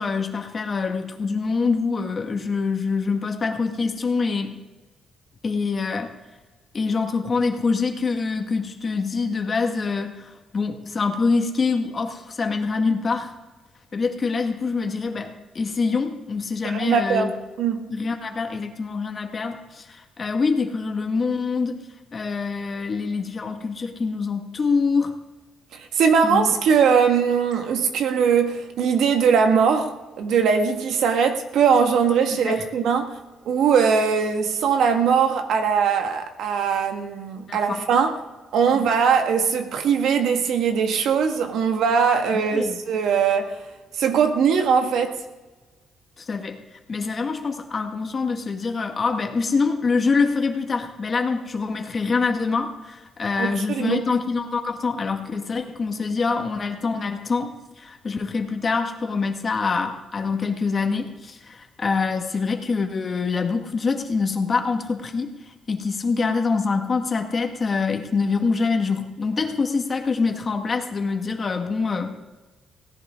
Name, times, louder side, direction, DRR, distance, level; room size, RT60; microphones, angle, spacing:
voice 1, 0.0-4.6 5.4-6.1 6.7-13.3 13.9-17.3 17.9-21.8 22.1-25.1 26.2-26.5 32.4-32.7 37.5-37.8 38.7-38.9 42.3-42.8 46.2-46.6 46.9-65.3 65.7-72.2, left 4 dB, 40° left, 1.7 m, -25 dB
voice 2, 16.6-17.3 17.6-17.9 25.7-33.2 33.4-38.2 38.5-43.6 43.9-45.2 53.4-54.1, right 6 dB, 75° right, 1.7 m, -21 dB
17.0 x 16.0 x 3.7 m
cardioid pair, 90°, 0 cm